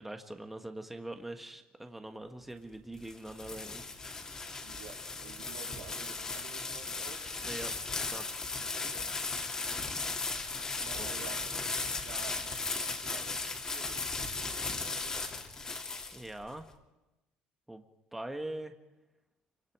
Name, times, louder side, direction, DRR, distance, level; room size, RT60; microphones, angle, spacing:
voice 1, 0.0-4.5 7.4-7.7 8.1-8.8 10.8-11.1 16.1-16.7 17.7-17.8 18.1-18.7, right 1 dB, 5° right, 5 dB, 1.5 m, -43 dB
sound 1, 2.7-16.5, left 3 dB, 20° left, 2.9 m, -36 dB
voice 2, 4.6-7.4 8.7-9.1 10.7-11.5 11.9-15.2, right 8 dB, 80° right, 2 dB, 3.4 m, -51 dB
28.5 x 25.0 x 4.9 m, 1.0 s
cardioid pair, 130°, 3 cm